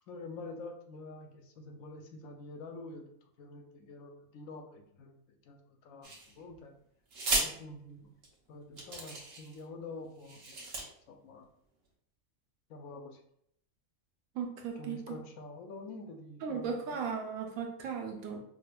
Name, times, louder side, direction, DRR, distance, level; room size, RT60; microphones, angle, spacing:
voice 1, 0.1-3.1 3.4-6.7 7.4-8.1 8.5-10.6 11.1-11.5 12.7-13.2 14.8-16.8, left 3 dB, 90° left, 4 dB, 1.0 m, -47 dB
sound 1, 6.0-6.6 7.1-7.5 8.2-8.3 8.8-9.6 10.2-10.8, right 2 dB, 55° right, 0.9 m, -34 dB
voice 2, 14.3-15.2 16.4-18.4, right 6 dB, 90° right, 3 dB, 1.1 m, -37 dB
5.0 x 2.1 x 2.2 m, 0.69 s
omnidirectional pair, 1.4 m